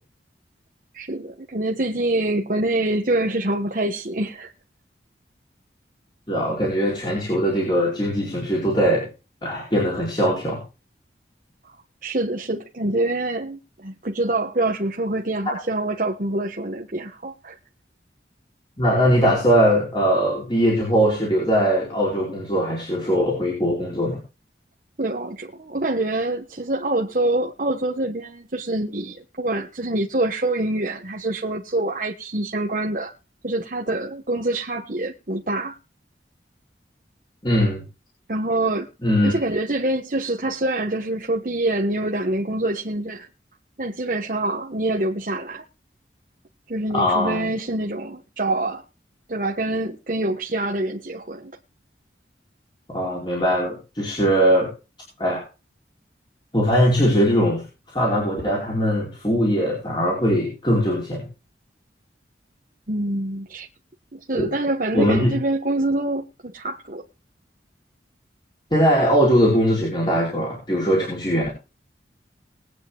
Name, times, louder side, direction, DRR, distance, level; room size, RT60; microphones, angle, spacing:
voice 1, 0.9-4.5 12.0-17.6 25.0-33.1 33.4-35.7 38.3-38.9 39.2-43.3 43.8-45.6 46.7-48.8 49.3-51.5 62.9-63.7 64.1-67.0, right 2 dB, 45° right, 1.3 m, -25 dB
voice 2, 6.3-9.1 9.4-10.6 18.8-24.2 37.4-37.8 39.0-39.3 46.9-47.5 52.9-54.7 55.2-55.4 56.5-57.6 57.9-61.2 64.4-64.5 64.9-65.4 68.7-71.5, equal, 25° left, 4.6 m, -20 dB
21.0 x 9.1 x 2.3 m
head